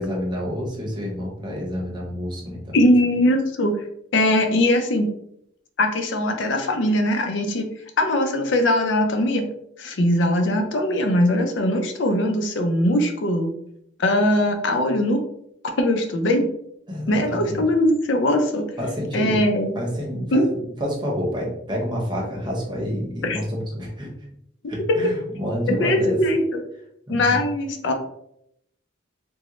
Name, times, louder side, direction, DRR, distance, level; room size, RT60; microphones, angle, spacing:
voice 1, 0.0-2.8 16.9-17.7 18.8-19.4 19.7-24.1 24.7-26.2 27.1-27.4, equal, 25° right, -2 dB, 0.8 m, -28 dB
voice 2, 2.7-3.8 4.1-5.1 5.8-7.7 8.0-9.4 9.8-13.5 14.0-15.2 15.7-16.5 17.1-18.6 19.1-19.7 20.3-20.4 23.2-23.4 25.7-26.4 27.1-27.9, left 1 dB, 60° left, 5 dB, 0.5 m, -20 dB
3.6 x 2.0 x 3.0 m, 0.74 s
head